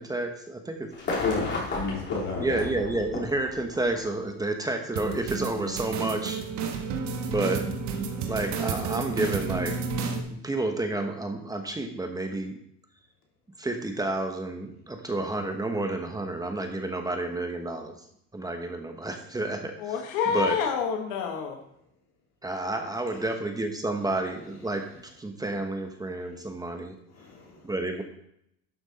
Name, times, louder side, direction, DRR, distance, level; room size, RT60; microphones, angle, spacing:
voice 1, 0.0-0.9 2.4-6.4 7.3-7.6 8.3-9.7 10.3-12.5 13.6-17.9 18.3-19.7 20.3-20.6 22.4-26.9 27.6-28.0, right 2 dB, 10° right, 5 dB, 1.0 m, -30 dB
sound 1, 0.9-4.0 5.1-5.2, left 2 dB, 35° left, 3.4 m, -33 dB
voice 2, 1.0-2.7 27.1-27.6, left 4 dB, 60° left, -2 dB, 3.5 m, -32 dB
sound 2, 5.0-10.2, right 5 dB, 70° right, 1.5 m, -31 dB
voice 3, 19.8-21.6, left 6 dB, 85° left, 3 dB, 1.4 m, -28 dB
11.5 x 6.2 x 4.1 m, 0.74 s
cardioid pair, 120°, 30 cm